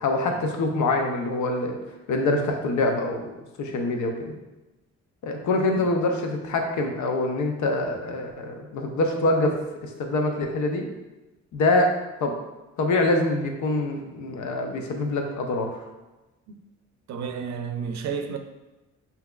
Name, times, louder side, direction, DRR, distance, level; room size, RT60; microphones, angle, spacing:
voice 1, 0.0-1.8 2.1-4.4 5.2-9.6 9.8-10.9 11.5-11.9 12.2-12.3 12.8-15.8, left 2 dB, 75° left, 3 dB, 0.7 m, -25 dB
voice 2, 17.1-18.4, right 6 dB, 65° right, 7 dB, 0.5 m, -32 dB
5.7 x 2.8 x 2.3 m, 1.1 s
cardioid pair, 90°, 30 cm